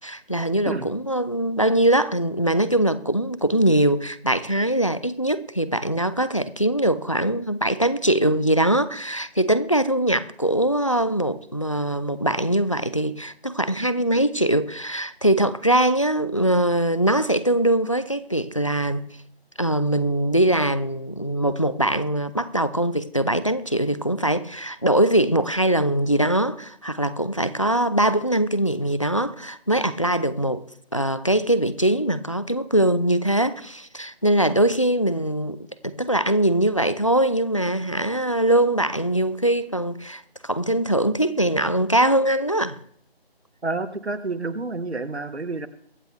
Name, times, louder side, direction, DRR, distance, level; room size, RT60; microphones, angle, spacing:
voice 1, 0.0-19.1 19.6-30.6 30.9-42.8, right 1 dB, 30° left, 0.6 m, -22 dB
voice 2, 43.6-45.7, right 3 dB, 85° right, 1.6 m, -29 dB
23.0 x 8.6 x 3.4 m
figure-of-eight pair, 175°, 32 cm